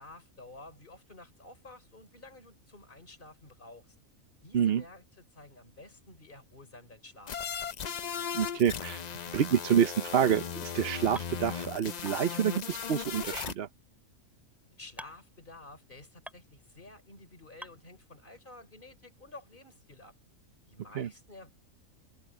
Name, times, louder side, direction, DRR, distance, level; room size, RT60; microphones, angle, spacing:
voice 1, 0.0-4.0 4.4-7.7 14.8-20.1 20.7-21.5, left 2 dB, 35° left, 4.6 m, -51 dB
sound 1, 7.3-13.5, left 7 dB, 55° left, 0.4 m, -37 dB
voice 2, 8.3-9.0 9.3-13.7 21.0-21.1, right 8 dB, 55° right, 0.8 m, -27 dB
sound 2, 11.2-11.3 12.1-12.2 13.4-13.5 15.0-15.2 16.3-16.4 17.6-17.7, equal, ahead, 4.7 m, -42 dB
omnidirectional pair, 1.5 m